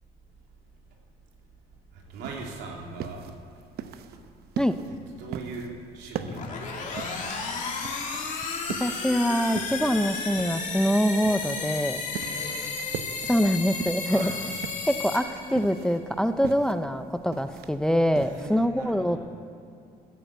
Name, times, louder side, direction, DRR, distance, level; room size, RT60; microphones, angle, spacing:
voice 1, 1.9-3.2 4.1-4.2 5.2-6.5 6.7-7.6 9.8-9.9 12.1-12.7 13.1-13.4 14.1-14.4 18.2-19.2, right 3 dB, 85° right, -1 dB, 2.9 m, -41 dB
sound 1, 2.1-18.5, right 9 dB, 70° right, 0.8 m, -40 dB
sound 2, 6.2-15.9, left 4 dB, 45° left, 2.4 m, -33 dB
voice 2, 8.8-12.0 13.3-14.3 14.9-19.2, equal, 5° left, 10 dB, 0.5 m, -24 dB
14.0 x 8.5 x 8.2 m, 2.5 s
cardioid pair, 110°, 17 cm